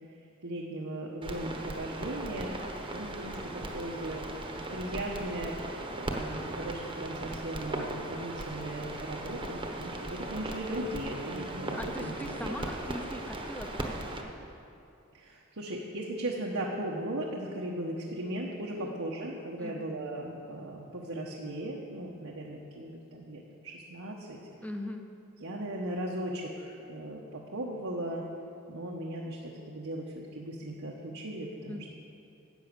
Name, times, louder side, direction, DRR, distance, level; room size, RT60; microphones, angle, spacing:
voice 1, 0.4-2.5 2.9-4.2 4.7-5.6 5.9-12.1 12.4-12.5 15.1-24.4 25.4-28.2 28.7-31.8, right 1 dB, 85° right, -3 dB, 1.2 m, -37 dB
sound 1, 1.2-14.2, right 1 dB, 25° right, 1.0 m, -38 dB
voice 2, 11.8-14.1 18.7-18.9 19.6-19.9 24.6-25.1 31.7-31.9, left 1 dB, 5° left, 5 dB, 0.8 m, -40 dB
11.0 x 8.4 x 7.0 m, 2.7 s
head